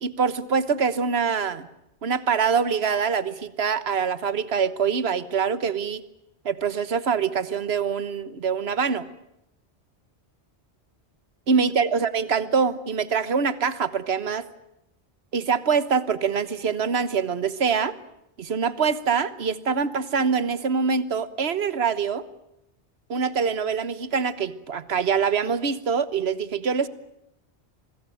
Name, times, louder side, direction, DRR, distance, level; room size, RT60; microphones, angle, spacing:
voice 1, 0.0-1.7 2.0-6.0 6.4-9.1 11.5-14.5 15.3-17.9 18.4-22.2 23.1-26.9, right 6 dB, 65° right, 14 dB, 1.5 m, -24 dB
25.0 x 22.0 x 9.2 m, 0.83 s
omnidirectional pair, 1.1 m